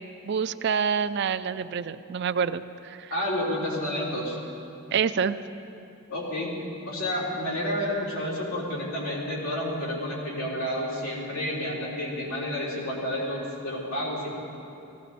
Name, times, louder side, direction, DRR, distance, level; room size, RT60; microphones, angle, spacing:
voice 1, 0.3-3.1 4.9-5.4, right 6 dB, 50° right, 13 dB, 0.4 m, -27 dB
voice 2, 3.1-4.4 6.1-6.5 6.9-14.3, left 1 dB, 85° left, -5 dB, 4.1 m, -30 dB
18.0 x 16.0 x 4.2 m, 2.8 s
head